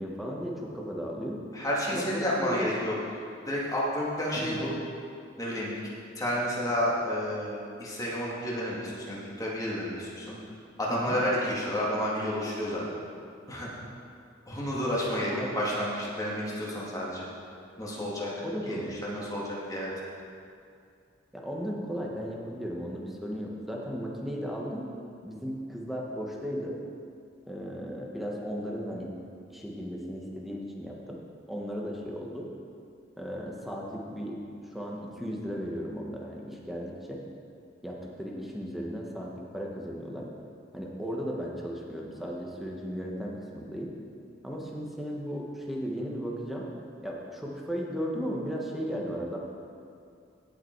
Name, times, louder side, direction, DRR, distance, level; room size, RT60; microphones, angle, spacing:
voice 1, 0.0-1.4 1.9-2.7 4.4-4.6 10.9-11.2 15.2-15.5 18.4-19.0 21.3-24.9 25.2-26.8 27.5-29.1 29.5-31.2 31.5-32.5 33.2-34.4 34.7-37.2 37.8-40.3 40.7-43.9 44.4-46.6 47.0-49.4, equal, ahead, -2 dB, 1.3 m, -35 dB
voice 2, 1.5-2.9 3.5-4.7 5.4-5.8 6.2-10.4 10.8-12.8 13.5-13.7 14.5-17.3 17.8-18.3 18.7-19.9, equal, 20° left, -6 dB, 2.2 m, -30 dB
17.0 x 6.0 x 4.6 m, 2.4 s
head